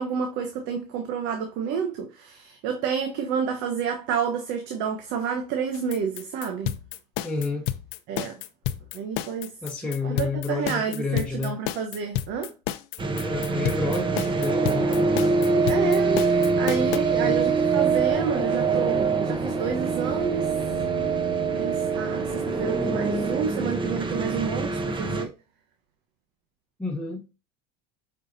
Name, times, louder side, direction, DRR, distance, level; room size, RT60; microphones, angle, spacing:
voice 1, 0.0-6.8 8.1-8.4 8.9-9.5 10.0-12.5 15.5-20.5 21.5-25.3, right 7 dB, 65° right, 1.1 m, -29 dB
sound 1, 5.7-17.0, left 13 dB, 65° left, 0.7 m, -31 dB
voice 2, 7.2-7.7 9.6-11.6 13.2-14.9 17.1-17.4 26.8-27.2, left 3 dB, 5° left, 1.2 m, -30 dB
sound 2, 13.0-25.2, right 4 dB, 25° right, 1.1 m, -24 dB
7.7 x 4.8 x 2.7 m
supercardioid pair, 90°, 21 cm